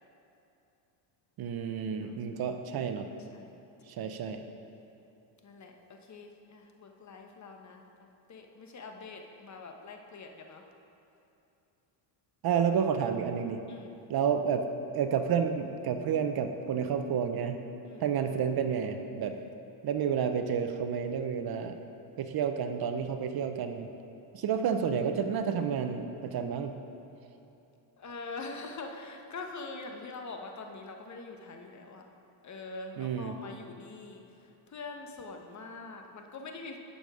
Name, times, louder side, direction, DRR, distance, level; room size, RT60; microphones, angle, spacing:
voice 1, 1.4-3.1 3.9-4.4 12.4-13.6 14.1-14.6 14.9-17.6 18.0-19.4 19.8-21.8 22.2-23.9 24.3-26.7 33.0-33.3, right 7 dB, 50° right, 7 dB, 0.8 m, -30 dB
voice 2, 3.3-3.9 5.4-10.6 13.7-13.9 17.8-18.1 28.0-32.0 32.4-36.8, left 3 dB, 35° left, 3 dB, 1.2 m, -44 dB
10.0 x 7.0 x 5.0 m, 2.9 s
supercardioid pair, 85°, 49 cm